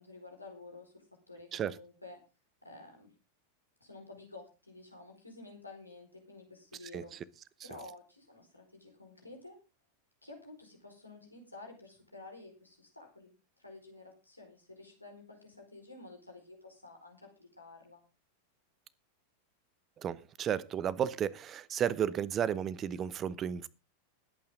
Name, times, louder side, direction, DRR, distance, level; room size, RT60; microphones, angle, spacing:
voice 1, 0.0-2.2 2.6-3.1 3.8-7.1 7.6-9.6 10.2-18.0, left 2 dB, 85° left, 4.7 m, -51 dB
voice 2, 20.0-23.7, right 9 dB, 30° right, 0.8 m, -33 dB
20.5 x 8.7 x 3.8 m
figure-of-eight pair, 90°, 0 cm